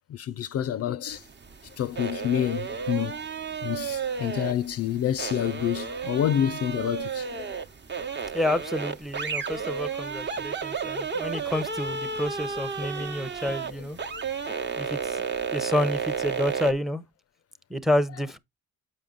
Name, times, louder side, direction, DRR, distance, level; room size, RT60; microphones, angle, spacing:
voice 1, 0.1-1.2 1.8-3.2 3.6-7.6 13.0-13.1 14.1-14.6, left 10 dB, 55° left, 0.4 m, -28 dB
sound 1, 1.1-16.7, right 6 dB, 35° right, 1.0 m, -32 dB
voice 2, 8.3-14.0 14.8-15.2 15.5-17.0 17.7-18.4, left 1 dB, ahead, 0.7 m, -29 dB
7.1 x 5.6 x 3.8 m
cardioid pair, 90°, 30 cm